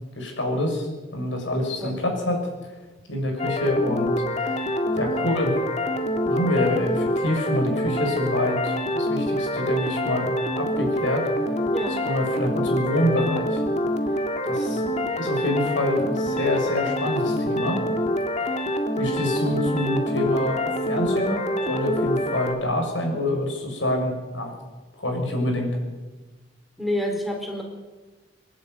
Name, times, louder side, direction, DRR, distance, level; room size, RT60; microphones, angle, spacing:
voice 1, 0.1-2.5 3.1-4.1 4.4-5.6 6.2-11.3 12.0-13.6 14.4-17.8 18.5-18.7 19.0-24.5 25.0-25.7, left 1 dB, 85° left, 2 dB, 6.9 m, -26 dB
sound 1, 3.4-22.6, equal, 35° left, 2.0 m, -26 dB
voice 2, 11.7-12.3 26.8-27.6, left 1 dB, ahead, 1 dB, 4.1 m, -29 dB
27.0 x 11.5 x 9.4 m, 1.2 s
head